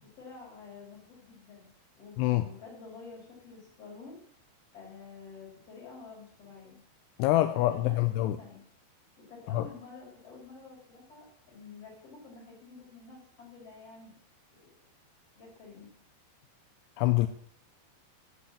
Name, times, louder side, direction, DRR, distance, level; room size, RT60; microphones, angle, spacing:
voice 1, 0.0-1.7 2.0-4.2 4.7-6.8 7.3-8.1 8.4-8.6 9.3-14.2 14.6-14.7 15.4-15.9, left 4 dB, 35° left, -2 dB, 5.4 m, -49 dB
voice 2, 7.2-8.4 9.5-9.7 17.0-17.3, left 15 dB, 85° left, 9 dB, 2.4 m, -25 dB
10.0 x 8.5 x 7.4 m, 0.64 s
omnidirectional pair, 5.2 m